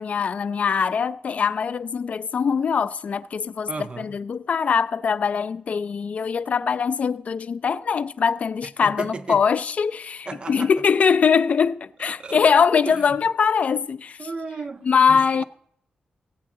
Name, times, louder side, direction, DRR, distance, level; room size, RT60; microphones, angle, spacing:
voice 1, 0.0-3.7 4.0-14.3 14.8-15.4, left 6 dB, 50° left, 0.3 m, -22 dB
voice 2, 3.7-4.1 8.8-9.4 10.3-10.7 12.2-12.5 12.9-13.1 14.2-15.4, right 4 dB, 35° right, 0.4 m, -34 dB
16.0 x 8.4 x 3.7 m
wide cardioid pair, 160°, 3 cm